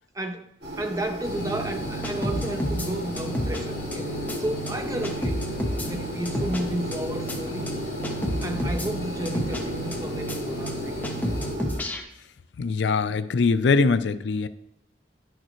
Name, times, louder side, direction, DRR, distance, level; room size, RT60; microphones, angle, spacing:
voice 1, 0.1-0.5 0.8-4.1 4.4-5.4 5.8-7.7 8.4-11.0 11.8-11.9, right 1 dB, 20° right, 5 dB, 0.7 m, -32 dB
sound 1, 0.6-11.8, equal, 70° right, 1.8 m, -35 dB
sound 2, 1.2-11.6, right 1 dB, 55° left, 0.9 m, -35 dB
sound 3, 2.0-2.9 3.2-3.6 3.9-4.0 4.3-4.4 4.7-4.8 5.0-5.9 6.2-6.6 6.9-7.0 7.3-7.4 7.7-7.8 8.0-8.9 9.2-9.6 9.9-10.0 10.3-10.4 10.7-10.8 11.0-12.0, equal, 10° left, 0.9 m, -29 dB
voice 2, 12.6-14.5, left 4 dB, 75° left, 14 dB, 0.4 m, -22 dB
10.5 x 6.5 x 3.1 m, 0.76 s
head